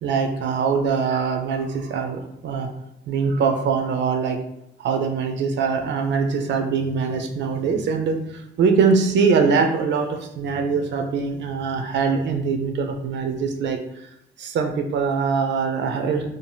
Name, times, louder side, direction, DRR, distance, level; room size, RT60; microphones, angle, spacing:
voice 1, 0.0-2.7 3.1-4.4 4.8-14.1 14.4-16.3, right 5 dB, 65° right, 4 dB, 0.4 m, -23 dB
2.7 x 2.0 x 3.2 m, 0.81 s
cardioid pair, 90°, 20 cm